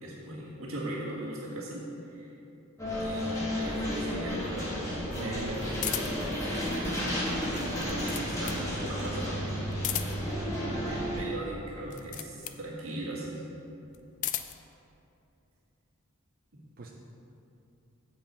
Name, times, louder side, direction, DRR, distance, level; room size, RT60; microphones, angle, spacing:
voice 1, 0.0-2.3 3.0-4.8 5.1-5.5 7.3-9.4 10.8-13.4 16.5-16.6, right 1 dB, 75° right, -5 dB, 1.6 m, -39 dB
sound 1, 2.8-11.2, equal, 15° left, 1.9 m, -32 dB
voice 2, 5.0-5.8 9.9-10.1 16.8-16.9, right 3 dB, 45° right, -1 dB, 0.6 m, -40 dB
sound 2, 5.8-6.3 7.6-8.7 9.7-10.4 11.8-12.6 13.9-14.7, left 12 dB, 35° left, 0.3 m, -35 dB
7.6 x 7.4 x 4.4 m, 2.8 s
head